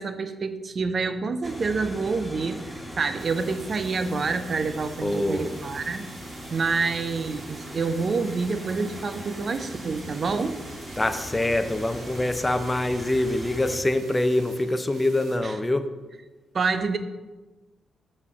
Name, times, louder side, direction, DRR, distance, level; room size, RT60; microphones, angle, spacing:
voice 1, 0.0-6.1 6.5-10.6 15.4-15.5 16.5-17.0, right 4 dB, 50° right, 10 dB, 0.6 m, -27 dB
sound 1, 1.4-13.8, equal, 10° right, 1.9 m, -40 dB
sound 2, 3.2-15.4, right 4 dB, 75° right, 0.9 m, -49 dB
voice 2, 5.0-5.6 11.0-15.9, left 1 dB, 20° left, 9 dB, 0.6 m, -25 dB
5.4 x 4.3 x 6.1 m, 1.2 s
hypercardioid pair, 45°, 0 cm